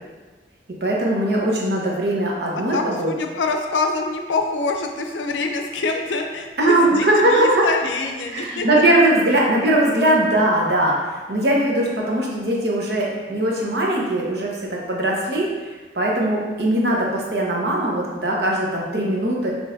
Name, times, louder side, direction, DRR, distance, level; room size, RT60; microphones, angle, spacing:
voice 1, 0.8-3.1 6.6-7.7 8.3-15.5 15.9-19.5, right 1 dB, 60° right, -3 dB, 0.9 m, -20 dB
voice 2, 2.5-8.7, left 3 dB, 85° left, 4 dB, 0.5 m, -25 dB
6.2 x 3.1 x 2.6 m, 1.3 s
head